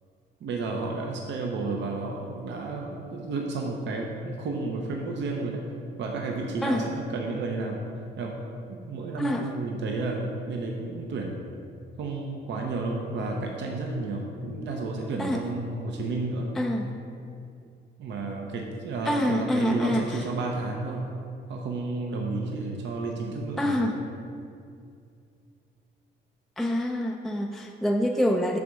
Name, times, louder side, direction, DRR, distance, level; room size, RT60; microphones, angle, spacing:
voice 1, 0.4-5.6 6.0-7.8 8.2-8.4 8.7-11.4 12.0-16.5 18.0-21.0 21.5-23.8, right 3 dB, 65° right, 0 dB, 0.8 m, -31 dB
voice 2, 9.2-9.5 15.2-15.4 16.6-16.9 19.1-20.2 23.6-24.0 26.6-28.6, left 1 dB, ahead, 2 dB, 0.4 m, -26 dB
7.0 x 3.5 x 6.2 m, 2.5 s
cardioid pair, 90°, 20 cm